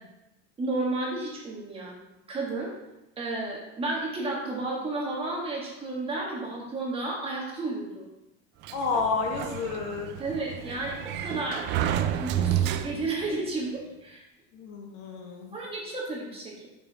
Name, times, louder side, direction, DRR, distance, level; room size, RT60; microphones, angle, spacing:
voice 1, 0.6-1.9 2.3-2.7 3.2-8.0 10.2-11.7 12.2-14.2 15.5-16.7, right 2 dB, 15° right, -3 dB, 1.7 m, -32 dB
Sliding door, 8.6-13.3, right 10 dB, 35° right, 0.4 m, -30 dB
voice 2, 8.7-10.1 14.5-15.6, left 4 dB, 45° left, 1 dB, 1.2 m, -30 dB
6.9 x 6.4 x 3.5 m, 0.95 s
supercardioid pair, 145°, 32 cm